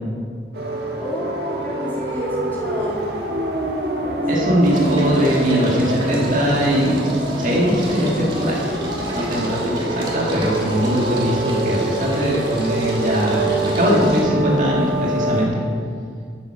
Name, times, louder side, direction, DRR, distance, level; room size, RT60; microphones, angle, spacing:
sound 1, 0.5-15.5, right 2 dB, 65° right, 1.4 m, -26 dB
voice 1, 1.0-3.0 4.0-4.5 5.1-5.3 9.6-10.5, equal, 10° left, -7 dB, 2.3 m, -31 dB
sound 2, 2.2-2.7 3.1-14.2, equal, 30° right, 2.2 m, -30 dB
voice 2, 4.3-7.1 7.4-8.6 9.1-15.6, equal, 45° right, -3 dB, 1.8 m, -20 dB
13.5 x 7.1 x 4.8 m, 2.2 s
head